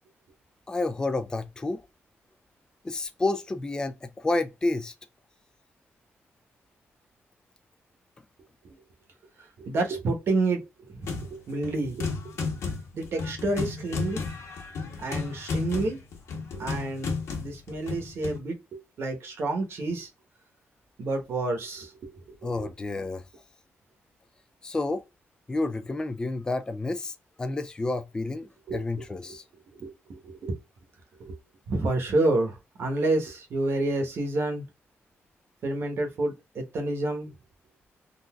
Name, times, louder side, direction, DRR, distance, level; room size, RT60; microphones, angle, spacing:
voice 1, 0.7-1.8 2.8-4.9 22.4-23.2 24.6-25.0 25.5-29.4, left 2 dB, 15° left, 0.3 m, -30 dB
voice 2, 9.6-10.6 11.0-12.1 12.9-14.2 15.0-16.0 16.5-20.1 21.0-22.1 22.4-22.7 28.7-29.0 29.8-30.6 31.2-31.4 31.7-34.7 35.6-37.3, right 2 dB, 60° right, 1.0 m, -29 dB
sound 1, 11.0-11.4 11.6-18.4, left 4 dB, 85° left, 1.4 m, -33 dB
3.9 x 2.5 x 2.3 m
wide cardioid pair, 140°, 5 cm